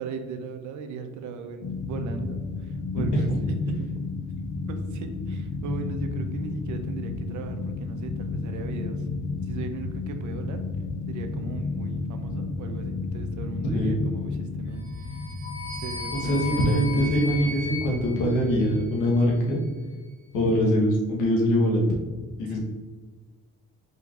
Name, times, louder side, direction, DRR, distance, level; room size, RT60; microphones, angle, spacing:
voice 1, 0.0-4.0 4.6-10.6 11.1-15.2 15.7-17.6 22.4-22.6, right 5 dB, 75° right, 7 dB, 0.6 m, -37 dB
sound 1, 1.6-18.9, left 3 dB, 70° left, 0.8 m, -32 dB
voice 2, 13.7-14.0 16.1-19.6 20.3-21.9 22.4-22.6, equal, 90° left, -2 dB, 1.2 m, -23 dB
sound 2, 14.8-19.2, left 3 dB, 45° right, 1.2 m, -37 dB
4.3 x 3.9 x 2.4 m, 1.4 s
cardioid pair, 90°, 30 cm